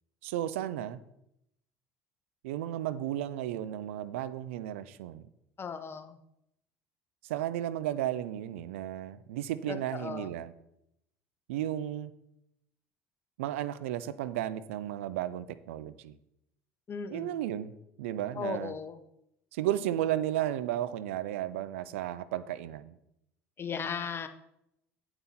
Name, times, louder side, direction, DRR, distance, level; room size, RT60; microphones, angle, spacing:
voice 1, 0.2-1.0 2.4-5.3 7.2-10.5 11.5-12.1 13.4-16.2 17.1-17.7 18.0-18.7 19.5-23.0, right 12 dB, 80° right, 15 dB, 0.6 m, -34 dB
voice 2, 5.6-6.2 9.7-10.3 16.9-17.3 18.3-19.0 23.6-24.3, left 6 dB, 35° left, 9 dB, 1.2 m, -37 dB
8.9 x 8.8 x 4.3 m, 0.79 s
hypercardioid pair, 70°, 7 cm